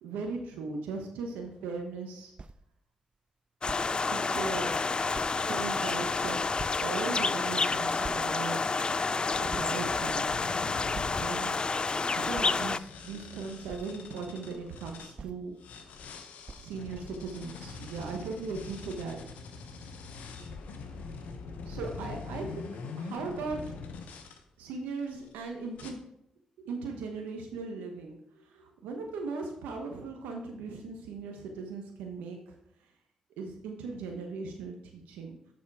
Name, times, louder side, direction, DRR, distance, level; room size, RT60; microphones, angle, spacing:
voice 1, 0.0-2.3 4.1-4.7 5.3-8.6 9.3-10.3 11.2-11.6 12.2-15.5 16.6-19.2 20.9-21.1 21.7-22.7 23.0-23.6 24.6-26.0 26.6-32.9 33.4-35.4, right 4 dB, 85° right, 3 dB, 1.0 m, -38 dB
sound 1, 2.4-2.6 3.7-3.9 4.6-4.7 5.1-5.4 6.6-6.9 8.0-8.3 9.0-9.1 9.5-10.3 10.9-11.3 12.3-12.6 13.7-13.9 15.2-15.4 16.5-16.7, right 4 dB, 40° right, 0.5 m, -44 dB
sound 2, 3.6-12.8, left 4 dB, 35° left, 0.4 m, -29 dB
sound 3, 9.3-15.1 15.6-24.4 25.0-25.4 25.8-25.9, left 4 dB, 80° left, 0.9 m, -44 dB
6.7 x 6.2 x 4.7 m, 0.79 s
supercardioid pair, 50°, 3 cm